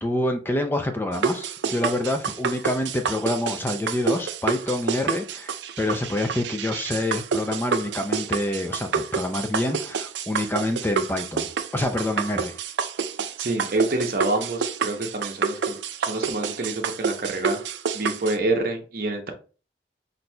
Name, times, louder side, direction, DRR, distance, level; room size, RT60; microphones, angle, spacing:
voice 1, 0.0-11.5 11.7-12.6, left 1 dB, 10° left, 0.4 m, -27 dB
sound 1, 1.1-18.4, right 6 dB, 75° right, 0.4 m, -28 dB
voice 2, 13.4-17.6 17.9-19.3, right 2 dB, 50° right, 0.8 m, -27 dB
5.9 x 2.6 x 2.2 m
head